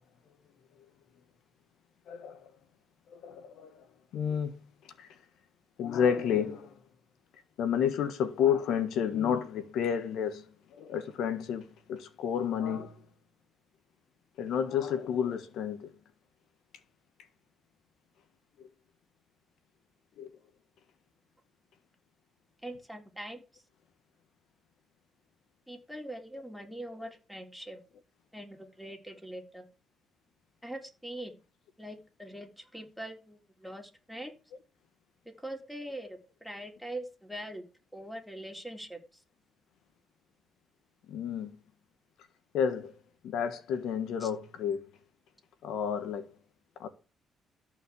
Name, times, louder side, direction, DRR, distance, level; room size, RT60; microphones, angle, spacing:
voice 1, 2.1-2.5 3.1-3.9 4.1-4.6 5.0-5.2 5.8-6.8 7.6-13.0 14.4-15.9 18.6-18.7 20.2-20.3 41.1-41.6 42.5-42.9 43.2-44.8 45.6-46.3 46.8-46.9, left 8 dB, 80° left, 1.5 m, -31 dB
voice 2, 22.6-23.6 25.7-27.8 28.3-29.7 30.6-31.4 31.8-34.3 35.3-37.6 37.9-39.2 44.2-44.3, right 1 dB, ahead, 3.7 m, -43 dB
13.5 x 5.5 x 8.5 m
cardioid pair, 90°, 0 cm